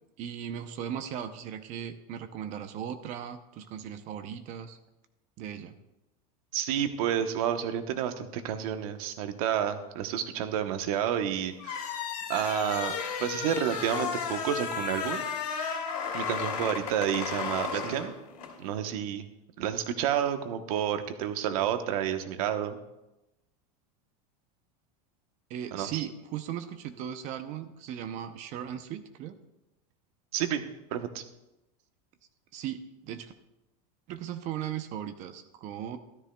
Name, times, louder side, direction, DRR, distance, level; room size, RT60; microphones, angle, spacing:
voice 1, 0.2-4.8 5.4-5.8 17.7-18.1 25.5-29.3 32.5-33.3 34.1-36.0, right 9 dB, 40° right, 10 dB, 0.6 m, -37 dB
voice 2, 6.5-12.0 12.3-15.2 16.1-18.1 18.6-19.3 19.6-22.8 25.7-25.9 30.3-30.6 30.9-31.2, right 9 dB, 65° right, 8 dB, 1.0 m, -30 dB
sound 1, 11.6-18.6, left 6 dB, 85° left, 2.8 m, -34 dB
13.5 x 12.5 x 2.3 m, 0.96 s
supercardioid pair, 160°, 20 cm